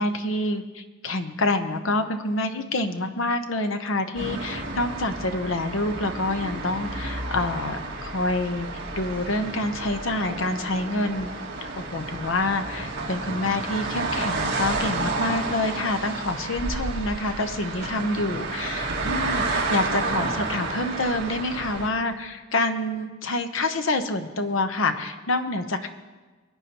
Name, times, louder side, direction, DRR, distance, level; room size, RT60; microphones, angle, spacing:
voice 1, 0.0-8.7 8.9-11.3 11.8-25.9, left 2 dB, 75° left, 7 dB, 0.9 m, -27 dB
sound 1, 4.1-21.9, right 3 dB, 60° right, 2.0 m, -30 dB
23.0 x 9.8 x 3.0 m, 1.3 s
head